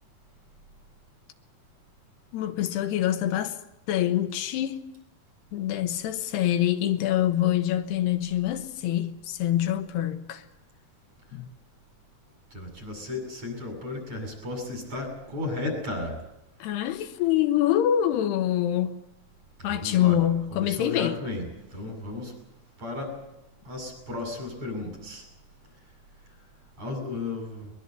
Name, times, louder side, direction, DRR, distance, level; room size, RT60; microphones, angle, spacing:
voice 1, 2.3-3.5 3.9-4.8 5.5-10.4 11.3-11.5 16.6-19.0 19.6-21.2, left 11 dB, 85° left, 3.3 m, -25 dB
voice 2, 12.5-16.2 19.7-20.2 20.5-21.5 21.7-22.3 22.8-23.1 23.7-25.3 26.8-27.7, left 2 dB, 40° right, 8.7 m, -34 dB
22.5 x 21.5 x 8.1 m
omnidirectional pair, 4.6 m